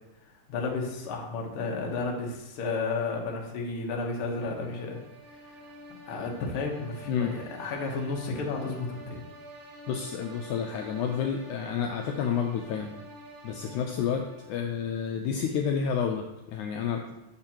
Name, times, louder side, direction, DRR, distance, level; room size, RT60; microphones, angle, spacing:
voice 1, 0.5-5.0 5.4-5.7 6.1-9.3, left 3 dB, 60° left, 0 dB, 1.5 m, -32 dB
sound 1, 3.9-14.9, right 2 dB, 65° right, 3.2 m, -48 dB
voice 2, 9.9-12.9 13.4-17.1, left 7 dB, 80° left, 3 dB, 1.8 m, -30 dB
8.6 x 6.6 x 2.9 m, 0.93 s
omnidirectional pair, 3.8 m